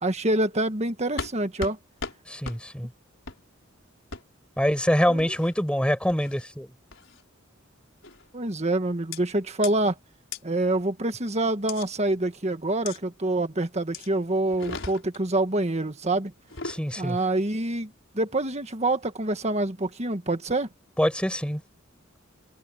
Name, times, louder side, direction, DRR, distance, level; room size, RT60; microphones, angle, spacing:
voice 1, 0.0-1.8 5.1-5.3 8.3-10.0 10.4-16.3 17.0-20.7, right 2 dB, 35° right, 1.7 m, -26 dB
sound 1, 1.2-1.3 1.6-1.8 2.0-2.2 2.4-2.6 3.3-3.4 4.1-4.2 5.2-5.5 6.1-6.4 6.9-7.2 8.0-8.3 9.1-9.2 9.6-9.7 10.3-10.4 11.7-11.9 12.9-13.0 13.9-14.1 14.5-15.2 16.4-16.8, left 4 dB, 65° left, 5.8 m, -36 dB
voice 2, 2.3-2.9 4.6-6.7 16.7-17.2 21.0-21.6, equal, 5° left, 7.8 m, -25 dB
head